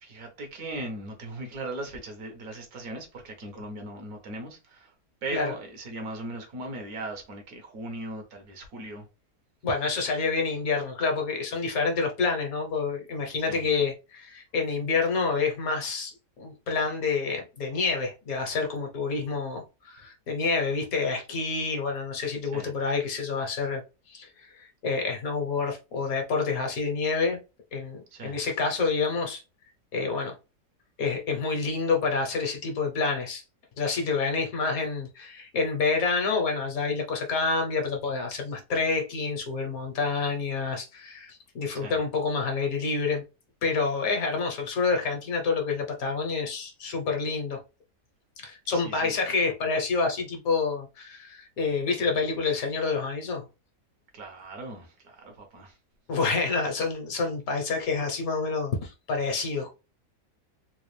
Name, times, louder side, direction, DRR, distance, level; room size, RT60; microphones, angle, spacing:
voice 1, 0.0-4.9 5.2-9.1 13.5-13.6 22.5-22.7 28.1-28.4 41.7-42.0 48.7-49.1 54.1-55.8, right 2 dB, 65° right, 1.5 m, -38 dB
voice 2, 9.6-23.8 24.1-27.4 27.7-29.4 29.9-30.3 31.0-33.4 33.8-43.2 43.6-47.6 48.4-53.4 56.1-59.7, left 4 dB, 65° left, 1.4 m, -28 dB
3.9 x 2.4 x 3.2 m
omnidirectional pair, 1.7 m